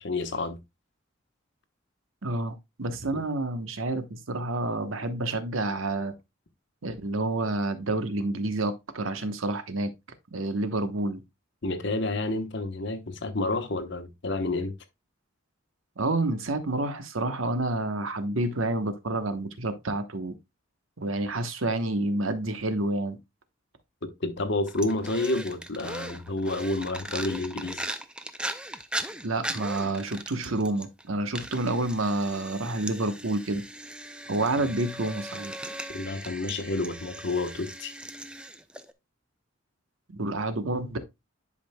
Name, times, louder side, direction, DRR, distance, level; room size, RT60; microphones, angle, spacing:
voice 1, 0.0-0.6 3.1-3.2 11.6-14.7 24.0-27.8 35.9-37.9, left 2 dB, 60° left, 1.0 m, -29 dB
voice 2, 2.2-6.1 6.8-9.9 10.3-11.2 16.0-20.3 21.0-23.2 29.2-33.6 34.3-35.5 40.1-41.0, right 2 dB, 80° right, 1.0 m, -29 dB
sound 1, 24.7-31.0 31.3-38.9, right 1 dB, 5° right, 0.4 m, -38 dB
11.0 x 5.2 x 2.2 m
head